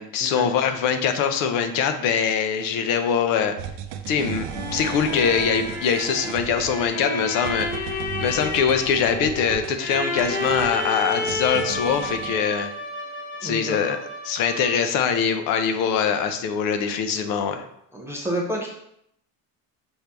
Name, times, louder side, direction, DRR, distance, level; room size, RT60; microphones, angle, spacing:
voice 1, 0.0-3.5 4.1-4.5 4.7-12.7 13.4-14.0 14.2-17.6, left 7 dB, 60° left, 8 dB, 0.5 m, -23 dB
sound 1, 3.6-12.4, right 9 dB, 80° right, 0.6 m, -36 dB
sound 2, 4.3-15.0, left 2 dB, 25° left, 0.8 m, -31 dB
voice 2, 13.4-14.0 17.2-17.3 17.9-18.7, right 1 dB, 5° right, -3 dB, 0.4 m, -29 dB
5.9 x 2.7 x 3.3 m, 0.73 s
cardioid pair, 170°, 37 cm